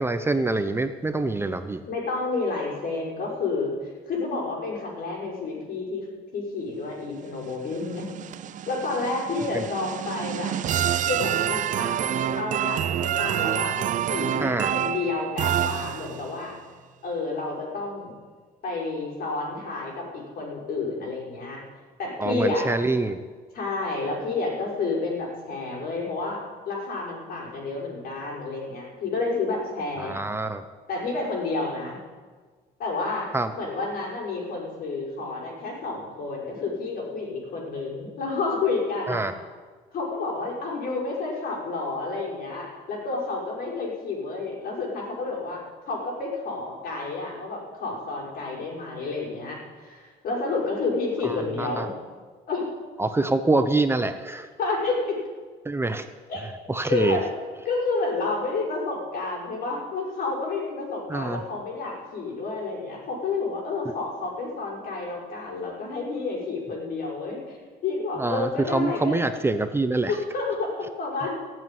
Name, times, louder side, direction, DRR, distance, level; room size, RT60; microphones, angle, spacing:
voice 1, 0.0-1.8 9.5-9.6 14.4-14.7 22.2-23.2 30.0-30.6 33.3-33.5 39.1-39.3 51.2-51.9 53.0-54.5 55.6-56.1 56.7-57.2 61.1-61.4 63.8-63.9 68.2-70.2, right 2 dB, 15° right, 8 dB, 0.8 m, -25 dB
voice 2, 1.9-3.7 4.1-6.1 6.3-8.1 8.7-10.5 11.1-16.5 17.0-18.1 18.6-21.6 22.0-22.7 23.5-30.2 30.9-32.0 32.8-33.3 33.5-39.2 39.9-51.9 52.5-52.7 54.6-55.1 56.3-57.3 57.6-69.2 70.1-71.3, left 3 dB, 65° left, -2 dB, 5.9 m, -30 dB
sound 1, 7.5-16.4, right 11 dB, 50° right, 0.5 m, -27 dB
17.0 x 7.8 x 9.4 m, 1.5 s
cardioid pair, 110°, 17 cm